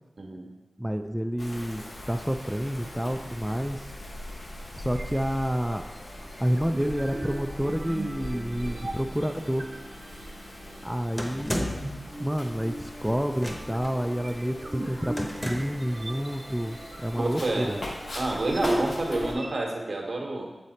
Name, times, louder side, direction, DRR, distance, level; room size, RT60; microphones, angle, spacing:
voice 1, 0.2-0.5 17.1-17.8 18.1-20.5, right 2 dB, 70° right, 0 dB, 1.2 m, -29 dB
voice 2, 0.8-3.8 4.8-5.8 6.4-9.7 10.8-11.6 12.2-15.2 15.5-17.8, equal, 5° right, 5 dB, 0.3 m, -29 dB
Wind, 1.4-19.3, left 1 dB, 90° left, 1.1 m, -41 dB
sound 1, 4.9-19.6, right 1 dB, 45° right, 0.8 m, -38 dB
sound 2, 11.2-12.0 13.4-13.9 15.2-15.9, equal, 15° left, 0.9 m, -32 dB
7.8 x 4.0 x 4.2 m, 1.1 s
wide cardioid pair, 85°, 0 cm